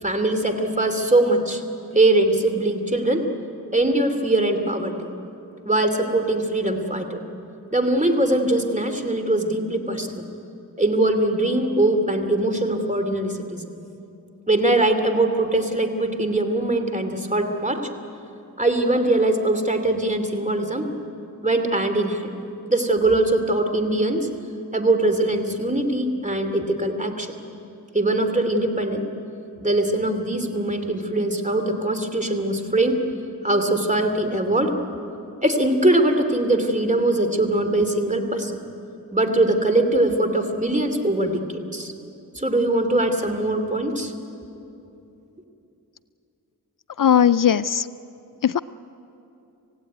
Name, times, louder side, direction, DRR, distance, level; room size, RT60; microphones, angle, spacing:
voice 1, 0.0-1.6 1.9-3.3 3.7-5.1 5.6-7.2 7.7-10.3 10.8-13.6 14.5-17.9 18.6-20.9 21.4-22.3 22.7-24.3 24.7-27.3 27.9-29.0 29.6-33.0 33.4-34.8 35.4-38.6 39.1-41.4 41.7-41.9 42.3-44.1, right 2 dB, 20° right, 6 dB, 2.8 m, -21 dB
voice 2, 47.0-47.8 48.4-48.6, left 9 dB, 60° left, 15 dB, 0.5 m, -18 dB
27.0 x 16.5 x 9.4 m, 2.8 s
cardioid pair, 45°, 37 cm